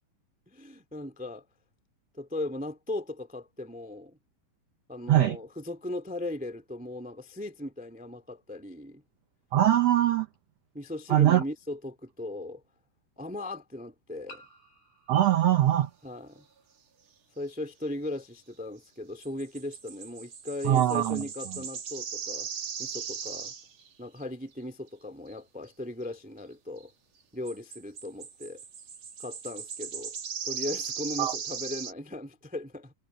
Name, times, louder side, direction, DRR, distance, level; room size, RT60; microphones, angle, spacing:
voice 1, 0.5-1.4 2.1-4.2 4.9-9.0 10.7-12.6 13.2-14.4 16.0-16.4 17.3-22.5 22.8-23.5 24.0-26.9 27.3-28.6 29.2-30.1 30.4-32.9, left 1 dB, 5° right, 1.0 m, -38 dB
voice 2, 9.5-10.3 11.1-11.4 15.1-15.9 20.6-21.2 31.2-31.3, right 12 dB, 75° right, 1.5 m, -22 dB
sound 1, 10.3-10.4 12.1-12.2 14.3-16.8, left 1 dB, 90° left, 8.8 m, -55 dB
sound 2, 15.1-15.4 19.2-23.9 24.2-24.3 25.3-25.4 26.8-26.9 27.5-31.9, right 7 dB, 50° right, 3.2 m, -38 dB
omnidirectional pair, 4.0 m